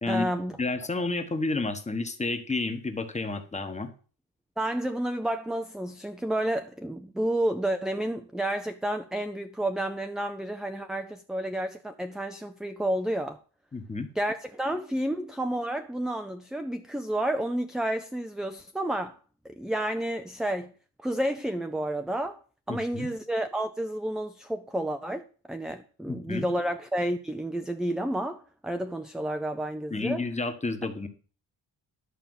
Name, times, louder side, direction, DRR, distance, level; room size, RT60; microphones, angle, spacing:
voice 1, 0.1-0.5 4.6-13.4 14.2-19.2 19.4-20.7 21.0-22.4 22.7-30.2, right 1 dB, ahead, 0.4 m, -30 dB
voice 2, 0.6-3.9 13.7-14.1 22.7-23.1 26.1-26.5 29.9-31.1, left 3 dB, 15° left, 1.2 m, -30 dB
11.5 x 5.0 x 7.8 m
wide cardioid pair, 155°, 43 cm